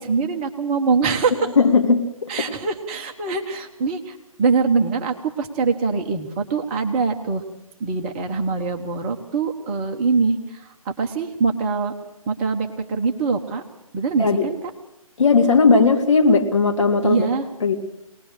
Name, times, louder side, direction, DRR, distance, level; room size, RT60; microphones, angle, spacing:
voice 1, 0.0-1.5 2.3-7.4 7.8-11.9 12.3-13.6 13.9-14.6 17.0-17.4, right 4 dB, 20° right, 3 dB, 1.3 m, -23 dB
voice 2, 1.6-2.5 14.2-14.5 15.2-17.3 17.6-17.7, left 4 dB, 55° left, 2 dB, 3.2 m, -17 dB
22.5 x 20.0 x 6.6 m, 0.89 s
figure-of-eight pair, 145°, 18 cm